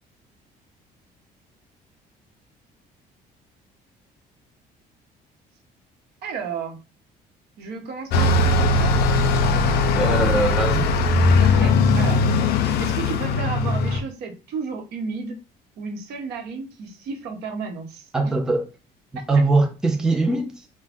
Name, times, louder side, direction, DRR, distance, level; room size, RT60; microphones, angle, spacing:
voice 1, 6.2-6.8 7.6-8.9 11.4-12.5 12.8-15.4 15.8-18.3, right 5 dB, 75° right, 0.8 m, -33 dB
Bus, 8.1-14.0, left 3 dB, 70° left, 0.4 m, -19 dB
voice 2, 9.9-10.9 18.1-18.7 19.1-20.5, right 2 dB, 5° right, 0.4 m, -21 dB
2.5 x 2.1 x 3.4 m
cardioid pair, 110°, 17 cm